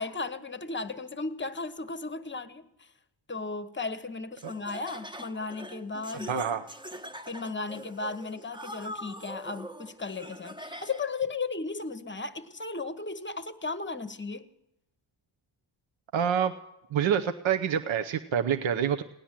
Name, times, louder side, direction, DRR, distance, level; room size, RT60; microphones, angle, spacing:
voice 1, 0.0-2.9 3.3-6.5 7.3-14.5, left 3 dB, 25° left, 1.0 m, -35 dB
Laughter, 4.4-11.2, equal, 10° right, 0.8 m, -43 dB
voice 2, 6.3-6.6 16.1-16.5 16.9-19.0, right 8 dB, 65° right, 0.9 m, -27 dB
17.5 x 10.0 x 7.4 m
cardioid pair, 95°, 49 cm